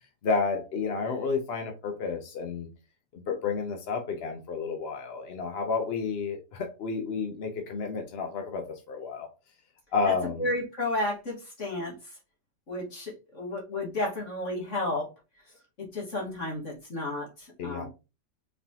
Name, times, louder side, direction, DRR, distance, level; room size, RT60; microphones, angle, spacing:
voice 1, 0.2-2.7 3.1-9.3 9.9-10.5 17.6-17.9, left 5 dB, 65° left, 0.6 m, -31 dB
voice 2, 10.4-12.2 12.7-15.1 15.8-17.9, left 2 dB, 45° left, 1.7 m, -32 dB
4.1 x 3.4 x 2.8 m
omnidirectional pair, 2.0 m